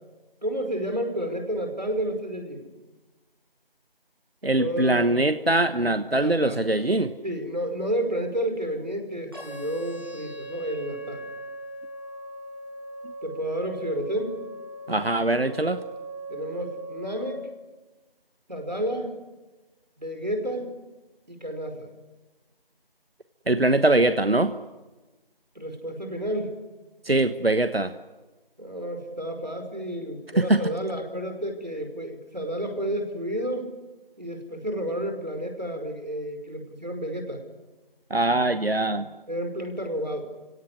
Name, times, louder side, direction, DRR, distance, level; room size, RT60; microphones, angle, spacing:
voice 1, 0.4-2.7 4.4-5.2 6.1-6.7 7.2-11.2 13.2-14.4 16.3-17.5 18.5-19.1 20.0-20.8 21.3-21.9 25.5-26.6 28.6-33.7 34.2-37.4 39.3-40.3, equal, 50° right, 5 dB, 5.1 m, -31 dB
voice 2, 4.4-7.1 14.9-15.8 23.5-24.5 27.1-27.9 30.5-30.6 38.1-39.1, right 2 dB, 90° right, 11 dB, 1.4 m, -22 dB
sound 1, 9.3-17.3, right 2 dB, 25° right, 6.7 m, -39 dB
30.0 x 17.0 x 9.8 m, 1.2 s
figure-of-eight pair, 180°, 29 cm